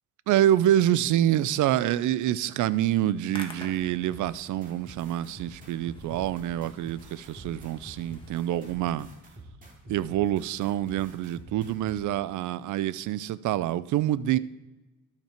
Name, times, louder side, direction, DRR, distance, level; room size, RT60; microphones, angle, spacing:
voice 1, 0.3-9.1 9.9-14.4, right 12 dB, 75° right, 18 dB, 0.5 m, -26 dB
Hands, 3.1-8.7, left 1 dB, 15° left, 1.8 m, -48 dB
sound 1, 4.1-12.0, right 2 dB, 25° right, 2.6 m, -47 dB
12.5 x 5.8 x 4.4 m, 1.1 s
cardioid pair, 90°, 30 cm